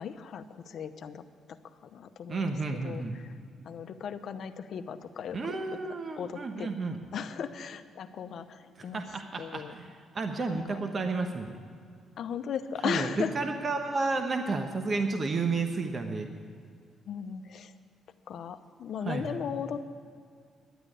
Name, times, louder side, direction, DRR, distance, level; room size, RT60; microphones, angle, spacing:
voice 1, 0.0-1.6 1.8-2.5 2.8-3.3 3.6-5.6 6.2-6.7 7.1-9.0 9.4-9.7 10.4-10.8 12.2-13.4 17.1-17.7 18.3-19.8, left 7 dB, 65° left, 10 dB, 0.8 m, -37 dB
voice 2, 2.3-3.2 5.3-7.0 8.8-11.6 12.8-16.3 19.0-19.4, right 3 dB, 40° right, 5 dB, 1.2 m, -32 dB
11.0 x 8.9 x 9.8 m, 2.2 s
cardioid pair, 90°, 0 cm